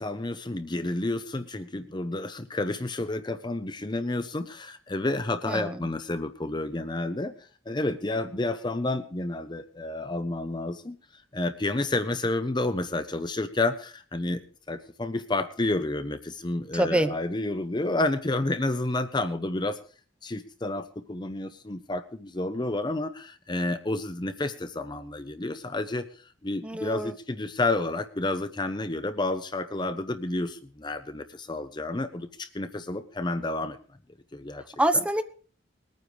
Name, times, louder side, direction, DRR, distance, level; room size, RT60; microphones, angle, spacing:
voice 1, 0.0-7.3 7.7-14.4 14.7-19.8 20.2-33.8 34.3-34.6 34.9-35.0, left 2 dB, 25° left, 10 dB, 0.7 m, -30 dB
voice 2, 5.5-5.8 16.7-17.1 26.6-27.1 34.8-35.2, right 1 dB, 5° right, 8 dB, 0.9 m, -25 dB
20.5 x 9.4 x 5.0 m, 0.41 s
head